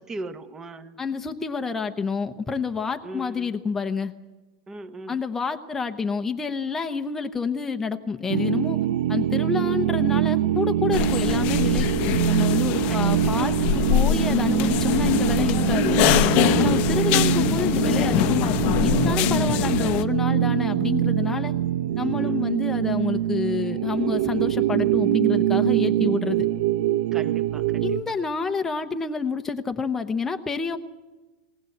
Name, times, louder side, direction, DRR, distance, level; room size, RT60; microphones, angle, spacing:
voice 1, 0.0-1.0 3.0-3.5 4.7-5.2 12.9-13.5 16.5-17.2 22.1-22.4 27.1-28.1, right 2 dB, 15° right, 10 dB, 1.0 m, -38 dB
voice 2, 1.0-4.1 5.1-8.8 9.1-11.9 12.3-13.5 13.9-16.1 16.6-21.5 22.0-26.5 27.8-30.8, left 5 dB, 10° left, 6 dB, 0.8 m, -28 dB
sound 1, 8.3-28.0, right 11 dB, 80° right, 0.8 m, -24 dB
sound 2, 10.9-20.0, left 13 dB, 40° left, 0.7 m, -23 dB
19.5 x 19.0 x 7.9 m, 1.2 s
supercardioid pair, 165°, 4 cm